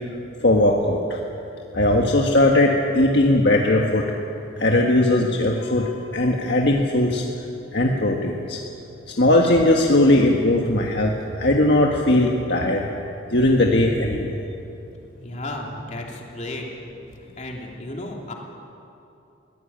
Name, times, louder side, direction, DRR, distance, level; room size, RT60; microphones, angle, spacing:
voice 1, 0.4-1.2 1.7-4.1 4.6-7.2 7.7-8.6 9.2-11.1 11.4-12.9 13.3-14.4, left 1 dB, 60° left, 0 dB, 1.6 m, -19 dB
voice 2, 15.2-16.7 17.1-18.3, left 1 dB, 35° left, -1 dB, 3.1 m, -34 dB
22.0 x 17.5 x 8.9 m, 2.7 s
head